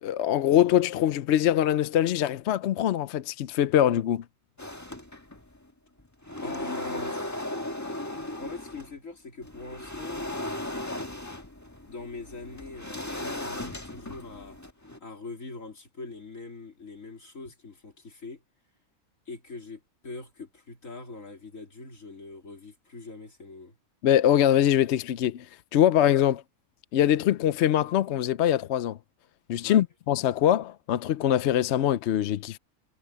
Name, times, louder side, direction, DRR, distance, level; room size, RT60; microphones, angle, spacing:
voice 1, 0.0-4.2 24.0-25.5 25.7-26.4 26.9-29.0 29.5-32.6, left 11 dB, 65° left, 0.8 m, -23 dB
sound 1, 4.6-5.6 6.0-8.9 9.4-15.0, left 1 dB, 15° left, 1.6 m, -36 dB
voice 2, 6.3-7.6 8.4-10.2 11.9-14.6 15.0-18.4 19.3-23.8 29.6-29.8, left 3 dB, 85° left, 3.8 m, -42 dB
omnidirectional pair, 1.3 m